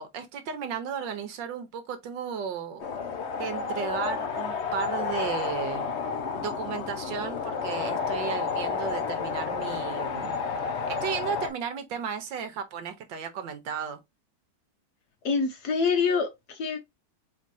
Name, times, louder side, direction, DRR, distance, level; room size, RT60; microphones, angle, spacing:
voice 1, 0.0-2.9 3.4-5.9 6.3-10.3 10.9-14.0, right 7 dB, 70° right, 1.5 m, -34 dB
sound 1, 2.8-11.5, left 5 dB, 80° left, 0.6 m, -31 dB
voice 2, 15.2-16.8, left 5 dB, 60° left, 1.2 m, -26 dB
4.4 x 3.6 x 2.6 m
omnidirectional pair, 2.2 m